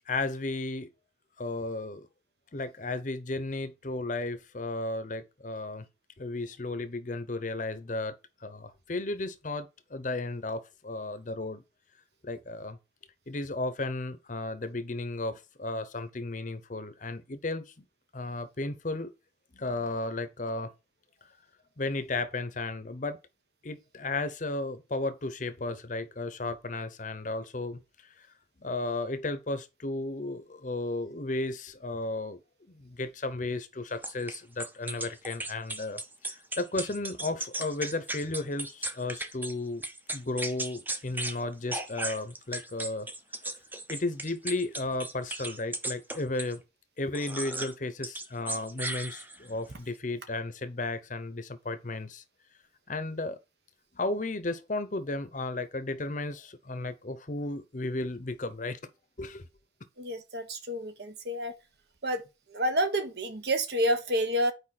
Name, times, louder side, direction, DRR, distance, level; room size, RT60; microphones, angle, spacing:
voice 1, 0.1-0.9 1.4-2.1 2.5-5.8 6.2-8.2 8.4-11.6 12.2-12.8 13.3-17.8 18.1-19.1 19.5-20.7 21.8-23.2 23.6-27.8 28.6-32.4 32.7-39.8 40.1-43.1 43.9-46.6 47.0-52.2 52.9-53.4 53.9-58.9 59.2-59.4, left 2 dB, 45° left, 0.8 m, -34 dB
sound 1, 34.0-39.5 39.8-41.4 41.7-46.6 47.1-47.7 48.0-49.5, right 2 dB, 10° right, 0.7 m, -36 dB
voice 2, 60.0-61.5 62.0-62.2 62.5-64.5, equal, 60° right, 1.1 m, -29 dB
8.7 x 4.9 x 4.2 m
head